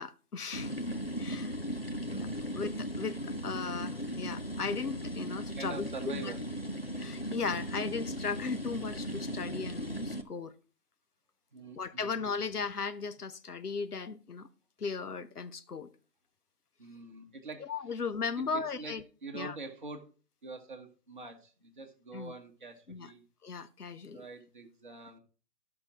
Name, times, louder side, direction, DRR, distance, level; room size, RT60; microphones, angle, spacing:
voice 1, 0.0-0.7 1.2-1.5 2.0-2.3 2.5-6.3 7.0-10.5 11.8-14.5 14.8-15.9 17.7-19.0 19.3-19.5 22.1-22.3 22.9-23.1 23.4-24.3, left 5 dB, 65° left, 0.9 m, -37 dB
sound 1, 0.5-10.2, equal, 40° left, 0.5 m, -37 dB
voice 2, 2.0-2.6 5.6-6.4 11.5-12.5 16.8-17.7 18.4-20.1 20.4-23.2 24.1-25.2, right 3 dB, 30° right, 1.2 m, -45 dB
12.5 x 5.9 x 3.7 m
figure-of-eight pair, 160°, 49 cm